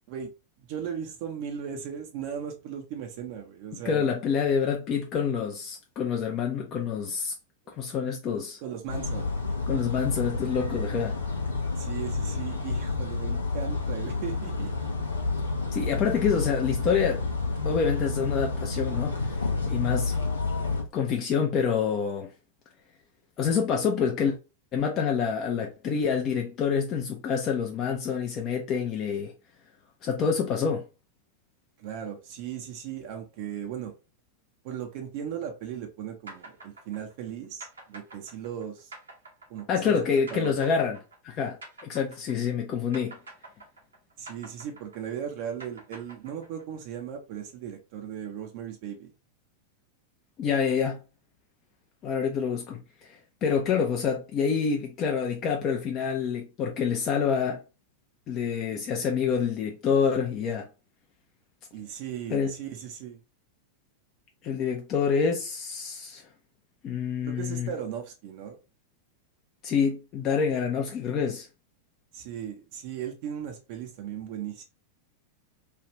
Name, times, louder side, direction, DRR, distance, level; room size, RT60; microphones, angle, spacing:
voice 1, 0.6-4.1 7.7-7.8 8.6-9.3 11.8-14.7 31.8-33.9 34.6-38.9 39.5-40.0 40.3-40.6 44.2-49.1 61.7-63.2 67.2-68.6 72.1-74.6, right 8 dB, 50° right, 0.5 m, -37 dB
voice 2, 3.8-7.3 7.8-8.6 9.7-11.2 15.7-17.2 17.6-20.1 20.9-22.3 23.4-24.4 24.7-29.3 30.0-30.8 39.7-41.0 41.2-41.6 41.8-43.2 50.4-51.0 52.0-57.6 58.3-60.7 62.3-62.5 64.4-66.2 66.8-67.7 69.6-71.5, left 6 dB, 35° left, 0.5 m, -27 dB
sound 1, 8.9-20.8, left 3 dB, 80° left, 0.7 m, -29 dB
sound 2, 36.3-42.6 42.9-46.8, right 2 dB, 75° right, 0.9 m, -47 dB
3.2 x 2.4 x 2.9 m
figure-of-eight pair, 90°, 0 cm